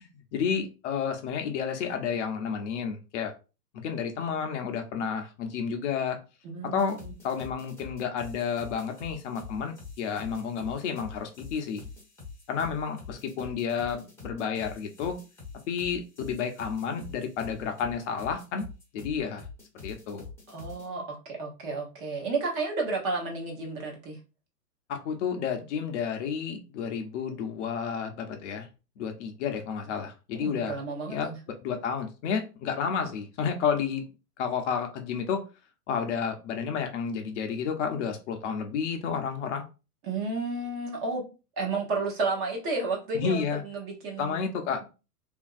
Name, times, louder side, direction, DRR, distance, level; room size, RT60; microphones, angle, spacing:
voice 1, 0.3-3.3 3.8-6.2 6.7-7.0 7.2-11.8 12.5-15.2 15.7-18.6 18.9-19.4 19.8-20.3 24.9-28.7 29.0-30.8 31.1-31.3 31.6-34.0 34.4-35.4 35.9-39.6 43.2-43.6 44.2-44.9, left 6 dB, 50° left, 5 dB, 0.6 m, -31 dB
voice 2, 6.4-7.1 20.5-24.2 30.4-31.4 40.0-41.3 41.6-44.4, right 3 dB, 25° right, 0 dB, 0.7 m, -32 dB
sound 1, 6.8-20.9, left 5 dB, 5° left, 0.7 m, -45 dB
2.9 x 2.6 x 2.3 m, 0.31 s
hypercardioid pair, 125°, 48 cm